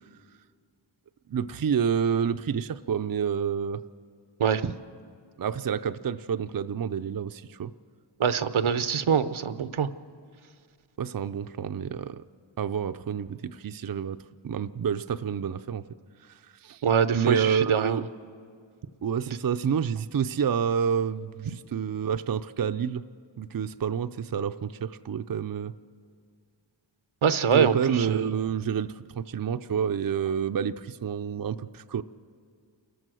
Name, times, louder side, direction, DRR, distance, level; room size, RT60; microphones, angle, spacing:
voice 1, 1.3-3.8 5.4-7.7 11.0-12.2 12.6-14.2 14.4-15.8 16.6-16.8 17.1-18.1 19.0-23.0 23.4-25.7 27.5-32.0, right 7 dB, 45° right, 9 dB, 0.5 m, -28 dB
voice 2, 4.4-4.7 8.2-9.9 16.8-18.0 27.2-28.3, right 7 dB, 80° right, 12 dB, 0.8 m, -24 dB
29.0 x 14.0 x 6.3 m, 2.2 s
wide cardioid pair, 40°, 48 cm